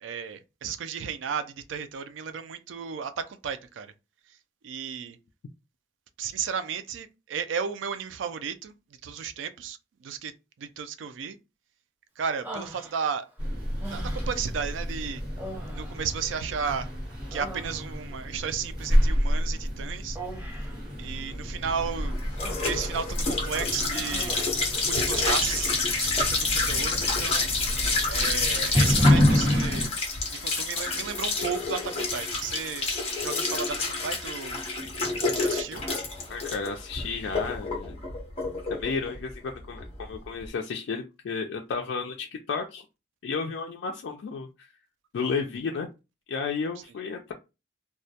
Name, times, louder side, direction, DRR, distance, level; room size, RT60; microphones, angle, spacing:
voice 1, 0.0-3.9 4.6-5.2 6.2-8.7 9.0-10.3 10.6-11.4 12.2-13.3 13.9-15.2 15.7-16.9 17.3-20.2 21.0-22.2 22.6-24.4 24.8-27.5 28.0-29.9 30.2-32.9 33.2-34.6 35.3-35.8, right 6 dB, 85° right, 0.4 m, -34 dB
Human voice, 12.4-13.3 13.8-14.5 15.3-16.8 17.1-18.2 20.2-20.8 21.9-22.9 23.2-23.5 23.9-24.7, right 2 dB, 10° right, 0.4 m, -42 dB
sound 1, 13.4-29.9, equal, 25° right, 1.1 m, -28 dB
sound 2, 21.4-40.4, left 3 dB, 30° left, 0.7 m, -29 dB
voice 2, 36.3-37.9 38.7-42.8 43.2-44.7 45.1-45.9 46.3-47.3, left 5 dB, 80° left, 0.3 m, -32 dB
2.2 x 2.1 x 2.7 m
head